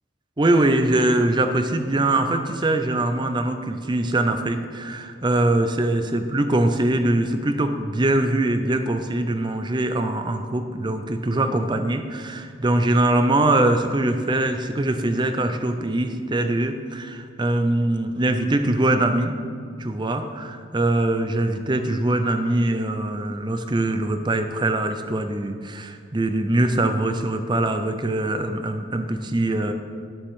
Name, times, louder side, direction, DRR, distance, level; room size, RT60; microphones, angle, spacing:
voice 1, 0.4-19.3 19.8-29.7, right 1 dB, 25° right, 7 dB, 0.5 m, -22 dB
12.5 x 7.1 x 3.7 m, 2.2 s
head